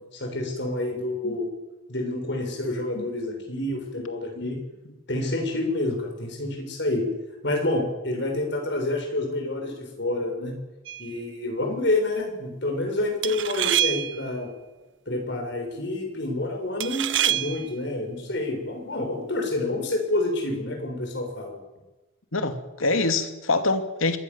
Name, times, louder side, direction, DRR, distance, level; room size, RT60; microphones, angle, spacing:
voice 1, 0.1-1.5 1.9-4.6 5.1-7.1 7.4-10.5 11.0-14.5 15.1-21.6, left 2 dB, 55° left, 6.8 m, -28 dB
sound 1, 10.9-11.2 13.2-14.3 16.8-17.7, right 12 dB, 65° right, 0.7 m, -26 dB
voice 2, 22.3-24.2, left 3 dB, 85° left, 2.4 m, -25 dB
25.5 x 22.0 x 7.3 m
head